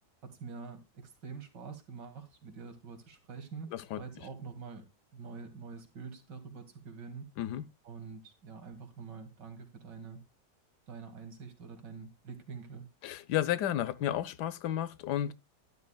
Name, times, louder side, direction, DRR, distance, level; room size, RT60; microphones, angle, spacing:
voice 1, 0.2-3.7 4.0-4.9 5.1-7.3 7.8-10.2 10.9-12.9, right 5 dB, 75° right, 2.7 m, -46 dB
voice 2, 3.7-4.0 7.4-7.7 13.0-15.3, left 11 dB, 70° left, 1.2 m, -32 dB
12.0 x 12.0 x 2.3 m
omnidirectional pair, 1.9 m